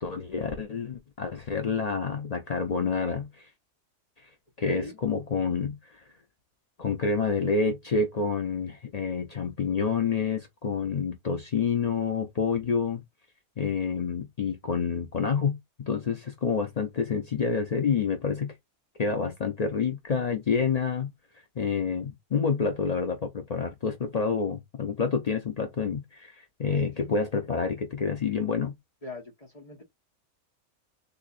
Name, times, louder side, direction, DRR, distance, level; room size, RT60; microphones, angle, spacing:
voice 1, 0.0-3.5 4.6-6.0 6.8-13.0 13.6-18.5 19.0-21.1 21.6-28.7, left 5 dB, 85° left, 0.3 m, -28 dB
voice 2, 4.6-5.0 26.7-27.1 29.0-29.8, left 1 dB, 25° left, 1.3 m, -39 dB
3.7 x 2.9 x 2.5 m
omnidirectional pair, 1.5 m